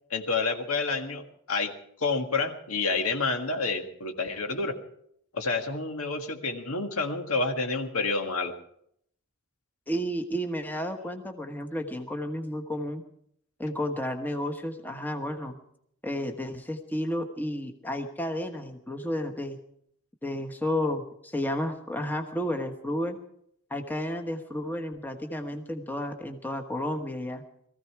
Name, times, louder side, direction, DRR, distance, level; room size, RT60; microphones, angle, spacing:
voice 1, 0.1-1.7 2.0-4.7 5.3-8.5, left 3 dB, 75° left, 5 dB, 1.8 m, -29 dB
voice 2, 9.9-13.0 13.6-15.6 16.0-19.6 20.2-23.2 23.7-27.4, left 1 dB, 10° left, 5 dB, 1.2 m, -32 dB
19.5 x 15.0 x 4.7 m, 0.69 s
head